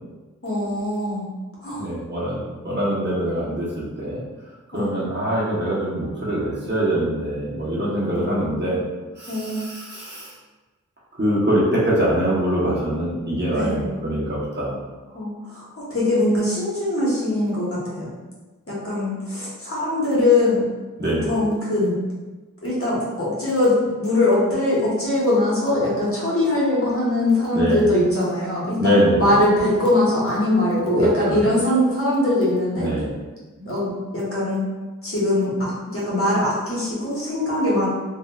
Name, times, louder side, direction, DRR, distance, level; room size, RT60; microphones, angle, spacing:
voice 1, 0.4-1.3 1.6-1.9 4.7-4.9 8.0-8.4 9.3-9.6 13.5-13.8 15.1-18.1 18.7-20.7 21.3-21.9 22.6-28.8 29.2-32.9 33.7-34.6 35.0-37.9, left 1 dB, 45° left, -8 dB, 1.3 m, -22 dB
voice 2, 1.8-4.2 4.7-8.8 9.2-10.3 11.2-14.8 21.0-21.3 27.5-27.9 28.8-29.3 31.0-31.4 32.8-33.1 33.6-33.7, right 1 dB, 35° right, -8 dB, 1.1 m, -23 dB
3.2 x 2.8 x 2.4 m, 1.2 s
wide cardioid pair, 45°, 32 cm